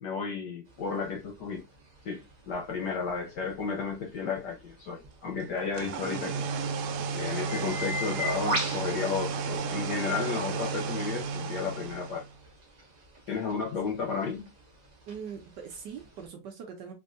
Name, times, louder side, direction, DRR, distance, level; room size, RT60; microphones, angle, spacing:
voice 1, 0.0-1.6 2.0-6.5 7.1-12.2 13.3-14.5, left 5 dB, 70° left, 1.1 m, -33 dB
sound 1, 0.7-9.9 10.4-16.3, equal, 45° right, 0.5 m, -40 dB
sound 2, 5.6-12.3, right 5 dB, 90° right, 1.5 m, -33 dB
voice 2, 15.1-16.9, right 7 dB, 70° right, 1.1 m, -42 dB
3.3 x 2.7 x 2.5 m
omnidirectional pair, 2.3 m